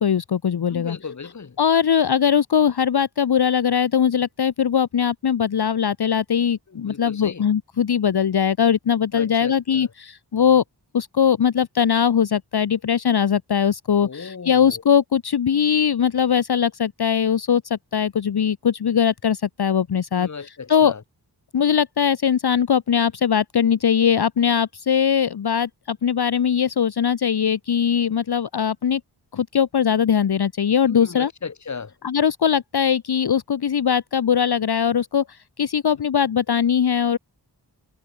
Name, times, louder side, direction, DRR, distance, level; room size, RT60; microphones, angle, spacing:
voice 1, 0.0-1.0 1.6-10.6 10.9-20.9 21.5-29.0 29.3-31.3 32.0-37.2, left 8 dB, 65° left, 0.8 m, -20 dB
voice 2, 0.7-1.6 6.7-7.4 9.1-9.9 14.0-14.8 20.2-21.0 30.8-31.9, left 5 dB, 40° left, 1.0 m, -36 dB
wide cardioid pair, 60°, 42 cm